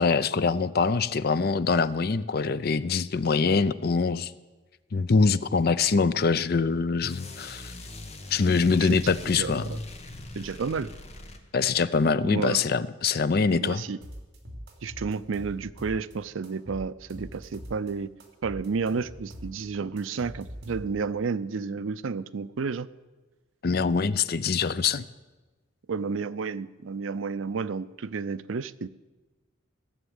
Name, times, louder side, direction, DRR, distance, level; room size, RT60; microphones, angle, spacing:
voice 1, 0.0-4.3 4.9-7.7 8.3-9.7 11.5-13.8 23.6-25.0, left 4 dB, 50° left, 15 dB, 0.5 m, -24 dB
sound 1, 7.0-11.8, left 2 dB, 30° left, 1.2 m, -41 dB
voice 2, 8.7-9.0 9.4-9.8 10.4-10.9 12.2-12.6 13.5-14.0 14.8-18.1 18.4-22.9 25.9-28.9, right 5 dB, 80° right, 15 dB, 0.5 m, -31 dB
sound 2, 14.0-16.2 16.4-17.9 18.2-21.1, equal, 55° right, 2.9 m, -43 dB
16.0 x 7.2 x 9.4 m, 1.2 s
head